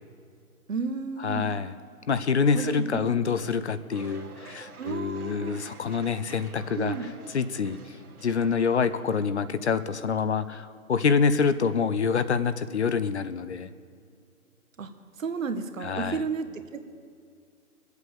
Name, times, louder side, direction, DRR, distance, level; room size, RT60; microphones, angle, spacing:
voice 1, 0.7-1.5 2.5-3.1 4.8-5.6 6.7-7.1 14.8-14.9 15.2-16.8, right 5 dB, 60° right, 8 dB, 1.5 m, -32 dB
voice 2, 1.2-1.7 2.1-6.9 7.3-8.0 8.2-13.7 15.8-16.2, left 5 dB, 50° left, 13 dB, 0.7 m, -26 dB
sound 1, 3.9-9.2, right 4 dB, 75° right, 2.1 m, -49 dB
21.5 x 8.2 x 6.9 m, 2.3 s
hypercardioid pair, 160°, 45 cm